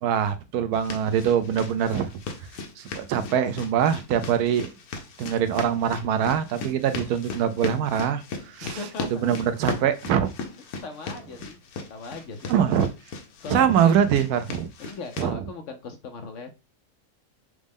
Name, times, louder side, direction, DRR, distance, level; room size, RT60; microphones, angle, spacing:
voice 1, 0.0-2.1 2.8-4.7 5.2-8.8 9.1-10.3 12.5-12.9 13.5-14.7 15.2-15.4, right 8 dB, 85° right, 10 dB, 1.1 m, -23 dB
sound 1, 0.7-15.3, left 4 dB, 80° left, 1.3 m, -38 dB
voice 2, 8.6-9.3 10.8-11.6 11.9-12.6 13.4-13.9 14.8-16.5, left 4 dB, 65° left, 5 dB, 0.9 m, -38 dB
6.2 x 2.1 x 3.5 m, 0.28 s
omnidirectional pair, 1.6 m